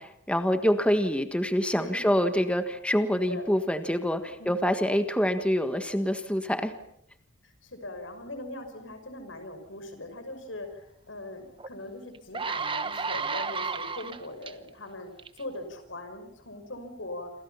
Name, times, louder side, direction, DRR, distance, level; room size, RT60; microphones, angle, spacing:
voice 1, 0.0-6.7, equal, 5° left, 8 dB, 1.5 m, -26 dB
voice 2, 1.7-2.2 3.1-3.5 4.4-4.6 7.4-15.1 15.4-17.3, left 2 dB, 90° left, 7 dB, 5.9 m, -41 dB
sound 1, 11.6-11.7 12.1-14.5 15.2-15.4, right 5 dB, 25° right, 1.1 m, -32 dB
28.5 x 26.5 x 5.8 m, 0.76 s
head